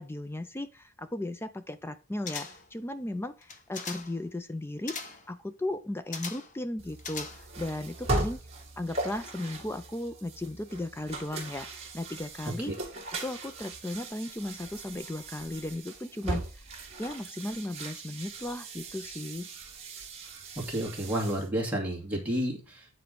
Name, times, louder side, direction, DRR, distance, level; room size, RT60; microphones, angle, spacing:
voice 1, 0.0-8.4 8.8-12.7 13.1-16.6 17.0-19.5, left 1 dB, 10° left, 11 dB, 0.3 m, -36 dB
sound 1, 2.3-2.8 3.4-4.2 4.9-5.3 6.1-6.6 7.0-7.7 8.0-8.1, left 5 dB, 35° left, 1.0 m, -40 dB
sound 2, 6.8-21.5, right 2 dB, 30° right, 2.1 m, -38 dB
voice 2, 20.6-22.9, right 1 dB, 5° right, -2 dB, 2.2 m, -31 dB
9.4 x 4.5 x 5.2 m, 0.34 s
head